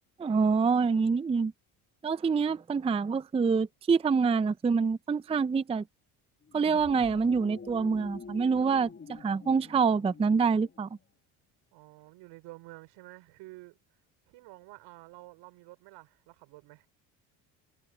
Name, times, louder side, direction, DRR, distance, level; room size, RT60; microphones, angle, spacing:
voice 1, 0.2-1.5 2.0-5.8 6.5-10.9, right 5 dB, 15° right, 0.5 m, -26 dB
sound 1, 6.4-11.0, left 5 dB, 25° left, 1.8 m, -47 dB
voice 2, 11.7-13.8 14.3-16.9, right 21 dB, 75° right, 4.6 m, -50 dB
supercardioid pair, 85°, 43 cm